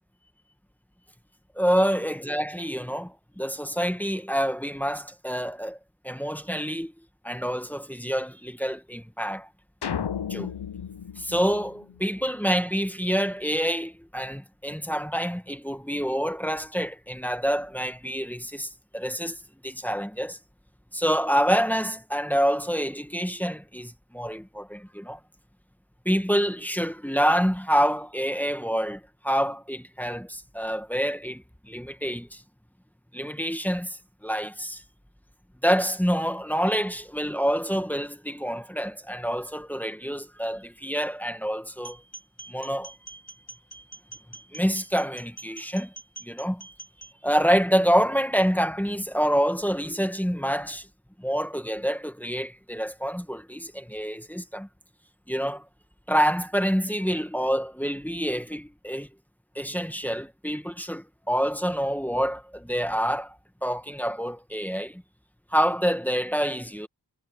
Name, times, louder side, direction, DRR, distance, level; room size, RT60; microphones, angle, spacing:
voice 1, 1.6-5.8 6.0-6.9 7.2-9.5 10.3-10.5 11.2-19.4 19.6-20.4 20.9-25.2 26.1-32.4 33.1-34.8 35.6-42.0 42.5-42.9 44.5-45.9 46.2-46.6 47.2-50.9 51.2-54.7 55.3-55.6 56.1-59.1 59.6-65.0 65.5-66.9, equal, 5° left, 1.7 m, -27 dB
sound 1, 9.8-12.3, left 8 dB, 90° left, 0.9 m, -34 dB
sound 2, 41.8-47.1, right 2 dB, 40° left, 5.8 m, -45 dB
cardioid pair, 45°, 39 cm